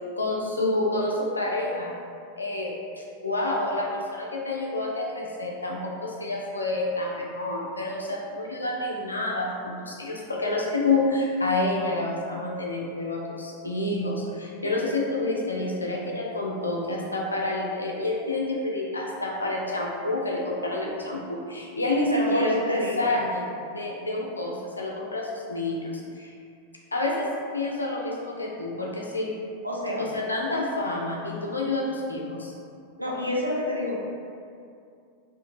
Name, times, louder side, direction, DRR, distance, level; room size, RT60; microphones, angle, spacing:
voice 1, 0.2-1.9 2.4-22.6 23.0-23.4 23.7-26.3 26.9-27.3 27.5-29.3 30.0-32.5, left 2 dB, 80° left, -2 dB, 0.4 m, -28 dB
voice 2, 22.1-23.0 29.6-30.0 33.0-34.1, equal, 90° right, -5 dB, 0.5 m, -28 dB
2.7 x 2.4 x 2.5 m, 2.4 s
figure-of-eight pair, 90°, 0 cm